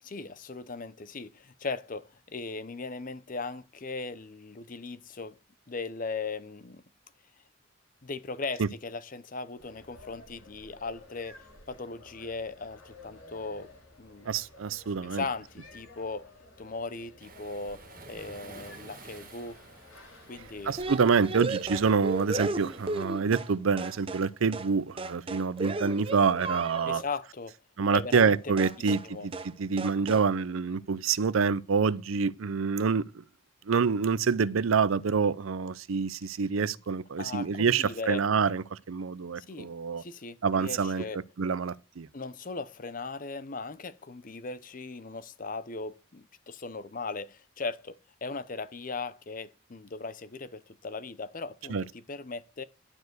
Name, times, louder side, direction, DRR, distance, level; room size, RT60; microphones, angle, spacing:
voice 1, 0.0-5.4 5.7-6.8 8.0-13.7 14.0-14.3 15.0-16.3 16.6-19.6 20.3-20.7 26.9-27.6 27.9-28.4 28.8-29.3 37.2-38.3 39.4-39.7 40.0-41.2 42.1-52.6, left 4 dB, 40° left, 0.7 m, -38 dB
sound 1, 9.6-22.8, left 2 dB, 80° left, 3.4 m, -54 dB
voice 2, 14.2-15.2 20.6-27.0 27.8-29.3 29.6-33.2 33.7-40.0 40.4-41.0 41.4-42.1 51.7-51.8, right 5 dB, 80° right, 0.5 m, -27 dB
Waves surf, 17.2-23.1, right 3 dB, 45° right, 2.0 m, -51 dB
sound 2, 20.8-23.5 23.8-24.3 24.5-24.7 25.0-27.1 28.1-28.3 28.6-29.1 29.3-29.5 29.8-30.3, right 2 dB, 25° right, 0.7 m, -35 dB
11.5 x 4.8 x 7.9 m
head